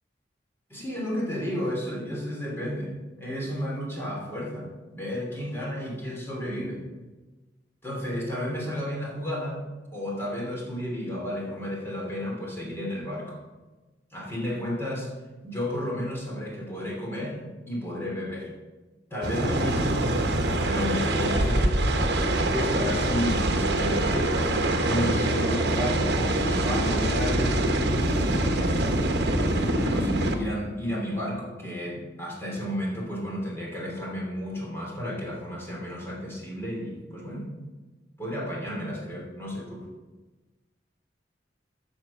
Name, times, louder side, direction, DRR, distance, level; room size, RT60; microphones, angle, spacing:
voice 1, 0.7-6.8 7.8-9.6 9.9-13.4 14.1-15.1 15.4-18.5 19.1-20.0 20.6-21.7 22.5-27.6 28.2-29.0 29.8-37.5 38.2-39.9, equal, 15° left, -3 dB, 3.0 m, -32 dB
sound 1, 19.2-30.3, right 1 dB, 65° right, 1.1 m, -24 dB
10.5 x 6.3 x 7.1 m, 1.2 s
head